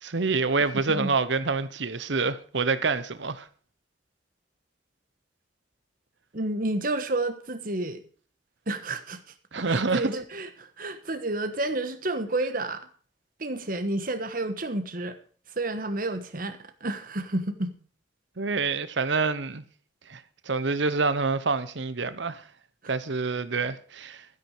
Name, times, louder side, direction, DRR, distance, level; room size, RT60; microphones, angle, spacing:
voice 1, 0.0-3.5 9.5-10.2 18.4-19.6 20.1-22.4 22.9-24.3, right 4 dB, 70° right, 1.0 m, -27 dB
voice 2, 6.3-8.0 8.7-9.2 9.5-12.9 13.4-15.2 15.5-17.7, right 2 dB, 45° right, 1.4 m, -30 dB
12.5 x 10.0 x 4.9 m
head